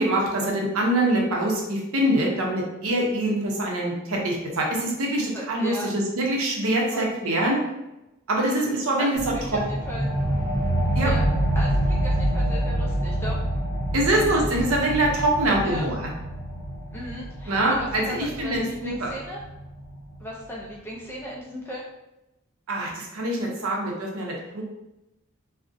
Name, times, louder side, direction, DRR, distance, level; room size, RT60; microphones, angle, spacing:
voice 1, 0.0-7.6 8.3-9.2 9.5-9.6 11.0-11.1 13.9-16.1 17.5-19.1 22.7-24.6, right 1 dB, 70° right, -1 dB, 0.6 m, -24 dB
voice 2, 5.3-5.9 6.9-7.4 8.4-10.1 11.0-11.2 11.6-13.4 14.1-14.3 15.6-15.9 16.9-19.4 20.2-21.8, equal, 10° left, -3 dB, 0.3 m, -36 dB
sound 1, 9.2-20.2, right 1 dB, 55° left, 0.7 m, -27 dB
2.4 x 2.0 x 2.5 m, 0.95 s
head